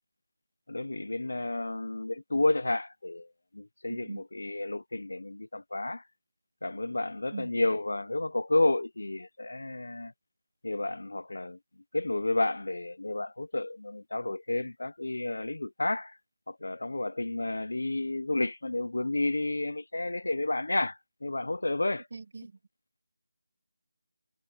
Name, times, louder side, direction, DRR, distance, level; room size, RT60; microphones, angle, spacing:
voice 1, 0.7-3.3 3.5-6.0 6.6-10.1 10.6-11.6 11.9-16.2 16.5-22.1, left 2 dB, 80° left, 0.4 m, -31 dB
voice 2, 3.9-4.2 7.3-7.6 22.1-22.5, right 4 dB, 55° right, 1.6 m, -41 dB
figure-of-eight pair, 170°, 0 cm